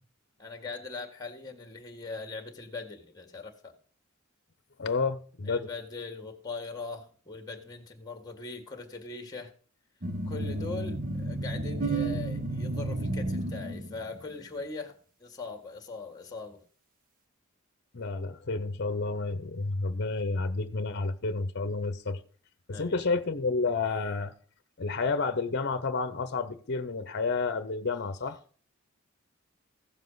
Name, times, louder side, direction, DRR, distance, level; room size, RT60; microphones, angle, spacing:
voice 1, 0.4-3.7 5.5-9.5 10.3-14.9 15.2-16.6 22.7-23.0, left 3 dB, 20° left, 1.8 m, -41 dB
voice 2, 4.8-5.7 17.9-22.2 22.7-24.3 24.8-28.4, left 3 dB, 55° left, 0.8 m, -30 dB
sound 1, 10.0-14.2, right 2 dB, 45° right, 1.3 m, -32 dB
15.5 x 7.4 x 4.0 m
head